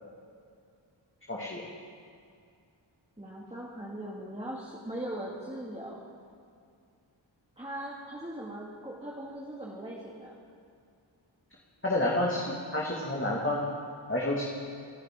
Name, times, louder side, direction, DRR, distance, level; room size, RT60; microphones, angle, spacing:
voice 1, 1.3-1.6 11.8-13.7 14.1-14.4, left 1 dB, 25° left, -4 dB, 2.3 m, -29 dB
voice 2, 3.2-6.1 7.6-10.4, right 1 dB, 15° right, -5 dB, 2.4 m, -40 dB
28.0 x 11.0 x 3.9 m, 2.3 s
wide cardioid pair, 55°, 46 cm